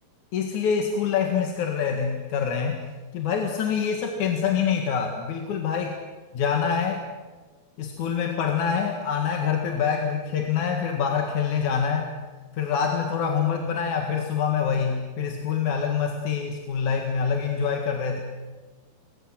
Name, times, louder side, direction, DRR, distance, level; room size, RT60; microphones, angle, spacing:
voice 1, 0.3-2.8 3.1-6.0 6.3-7.0 7.8-12.1 12.5-18.2, left 7 dB, 55° left, 3 dB, 3.0 m, -25 dB
29.5 x 22.5 x 7.9 m, 1.3 s
omnidirectional pair, 4.4 m